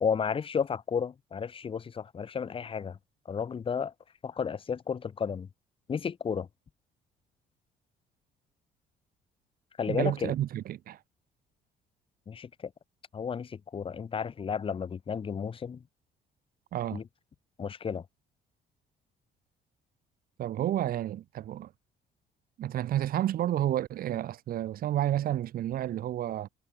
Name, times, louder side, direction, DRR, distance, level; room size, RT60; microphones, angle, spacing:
voice 1, 0.0-3.0 3.3-3.9 4.2-5.5 5.9-6.5 9.8-10.3 12.3-12.5 13.1-15.8 16.9-17.0 17.6-18.0, left 6 dB, 30° left, 1.2 m, -32 dB
voice 2, 9.9-11.0 16.7-17.0 20.4-21.7 22.6-26.5, right 12 dB, 60° right, 1.4 m, -30 dB
cardioid pair, 110°, 17 cm